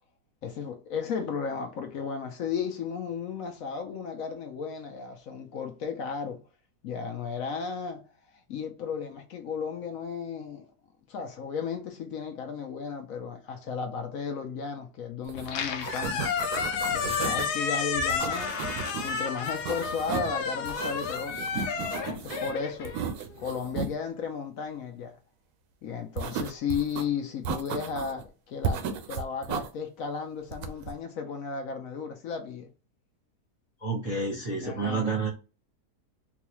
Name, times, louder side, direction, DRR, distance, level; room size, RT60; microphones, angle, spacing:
voice 1, 0.4-6.4 6.8-8.0 8.5-10.7 11.1-16.2 16.9-18.5 19.0-21.4 22.0-23.0 23.4-25.2 25.8-32.7 34.6-35.0, left 6 dB, 65° left, 1.0 m, -34 dB
Squeak, 15.3-23.6, left 6 dB, 85° left, 1.2 m, -31 dB
sound 1, 15.3-15.5 15.7-17.5 18.1-19.1 19.4-20.4 20.7-22.5 22.9-23.9 26.2-27.0 27.5-28.2 28.6-29.7 30.5-30.9, right 6 dB, 80° right, 1.1 m, -34 dB
voice 2, 33.8-35.3, right 3 dB, 30° right, 0.8 m, -29 dB
3.9 x 2.3 x 2.9 m
omnidirectional pair, 1.7 m